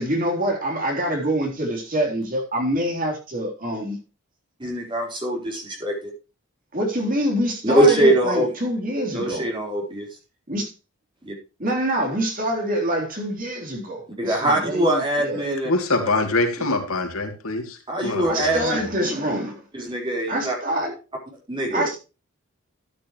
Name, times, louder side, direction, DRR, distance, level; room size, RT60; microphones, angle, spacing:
voice 1, 0.0-4.0 6.7-9.5 10.5-10.7 11.6-15.5 18.2-19.6 20.3-20.9 21.7-22.0, right 1 dB, 40° right, 1 dB, 3.7 m, -25 dB
voice 2, 4.6-6.0 7.6-8.5 9.1-10.1 11.2-11.3 14.2-15.7 17.9-18.8 19.7-20.5 21.5-21.9, right 1 dB, 20° right, 0 dB, 4.4 m, -22 dB
voice 3, 15.6-18.9, left 2 dB, 80° left, 4 dB, 2.8 m, -25 dB
13.5 x 9.4 x 3.1 m, 0.31 s
head